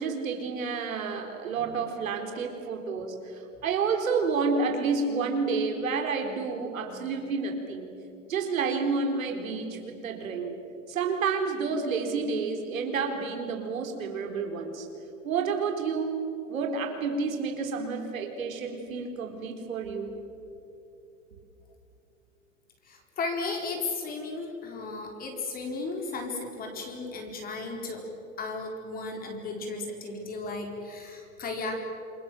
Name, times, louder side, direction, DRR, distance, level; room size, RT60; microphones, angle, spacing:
voice 1, 0.0-3.2 3.6-7.9 8.3-10.6 10.9-14.9 15.2-20.1, right 5 dB, 90° right, 3 dB, 4.2 m, -30 dB
voice 2, 22.8-28.0 28.4-31.8, left 3 dB, 20° left, 3 dB, 4.3 m, -35 dB
28.0 x 23.0 x 7.7 m, 2.8 s
hypercardioid pair, 140°, 39 cm